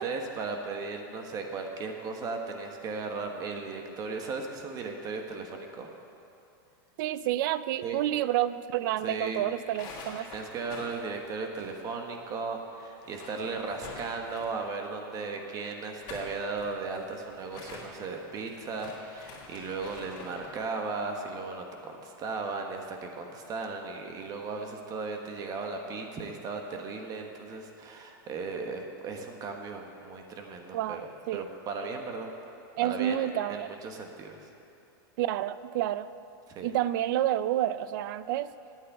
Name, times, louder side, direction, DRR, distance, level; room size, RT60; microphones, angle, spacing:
voice 1, 0.0-5.9 7.8-8.0 9.0-9.4 10.2-32.3 32.8-34.5 36.5-36.7, right 4 dB, 30° right, 3 dB, 1.2 m, -36 dB
voice 2, 7.0-10.3 30.7-31.0 31.3-31.4 32.8-33.7 35.2-36.1 36.6-38.5, right 13 dB, 65° right, 15 dB, 0.4 m, -29 dB
sound 1, 9.5-12.2 12.4-12.5 12.9-14.7 15.8-20.6, left 3 dB, 40° left, 3.0 m, -46 dB
8.8 x 8.4 x 8.3 m, 2.7 s
supercardioid pair, 140°, 12 cm